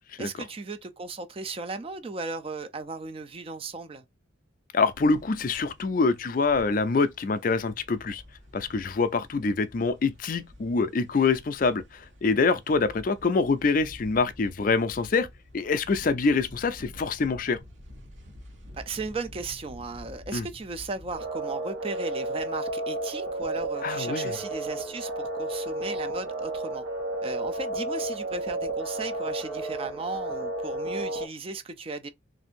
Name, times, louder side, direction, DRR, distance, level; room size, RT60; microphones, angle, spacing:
voice 1, 0.2-4.0 18.7-26.8 27.2-32.1, right 3 dB, 30° right, 0.4 m, -36 dB
voice 2, 4.7-8.2 8.5-15.3 15.5-17.6 20.3-20.5 23.8-24.3, left 4 dB, 45° left, 0.4 m, -25 dB
sound 1, 4.9-21.3, left 1 dB, 65° right, 1.1 m, -49 dB
sound 2, 21.1-31.2, right 1 dB, 85° right, 1.2 m, -32 dB
3.3 x 2.6 x 4.3 m
head